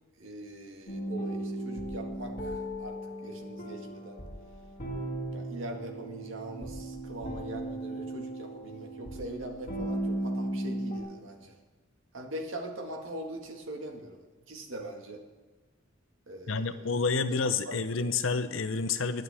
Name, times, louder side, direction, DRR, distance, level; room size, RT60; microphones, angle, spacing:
voice 1, 0.2-4.2 5.3-11.6 12.1-15.2 16.3-16.9 17.3-17.4 17.7-18.2, right 1 dB, 80° right, 2 dB, 1.8 m, -42 dB
sound 1, 0.9-11.0, right 1 dB, 45° left, 2.6 m, -36 dB
voice 2, 16.5-19.2, left 4 dB, 80° left, 10 dB, 0.8 m, -29 dB
21.0 x 9.3 x 3.5 m, 1.2 s
head